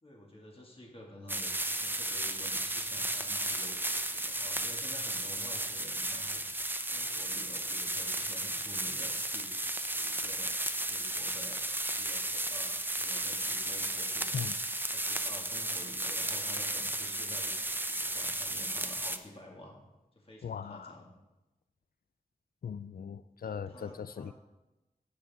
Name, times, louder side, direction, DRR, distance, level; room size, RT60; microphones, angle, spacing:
voice 1, 0.0-6.4 6.9-9.5 9.8-10.6 10.9-11.6 11.9-14.5 14.9-17.5 17.8-19.8 20.1-21.1 23.4-24.3, left 1 dB, 40° left, -1 dB, 2.1 m, -50 dB
sound 1, 1.3-19.2, right 1 dB, 15° right, 0.6 m, -34 dB
voice 2, 20.4-20.9 22.6-24.3, left 7 dB, 80° left, 14 dB, 0.4 m, -39 dB
16.5 x 6.6 x 3.6 m, 1.0 s
wide cardioid pair, 65°, 15 cm